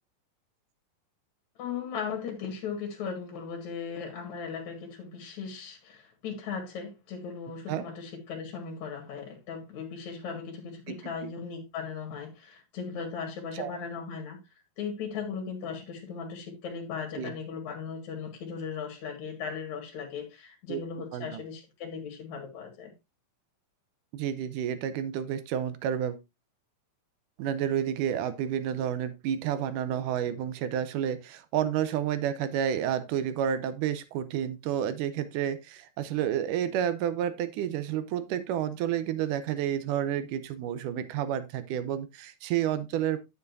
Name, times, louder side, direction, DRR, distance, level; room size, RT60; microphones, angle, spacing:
voice 1, 1.6-14.4 14.8-22.9, left 6 dB, 60° left, 2.7 m, -37 dB
voice 2, 24.1-26.2 27.4-43.2, right 10 dB, 75° right, 2.2 m, -30 dB
10.0 x 7.1 x 2.6 m
omnidirectional pair, 4.0 m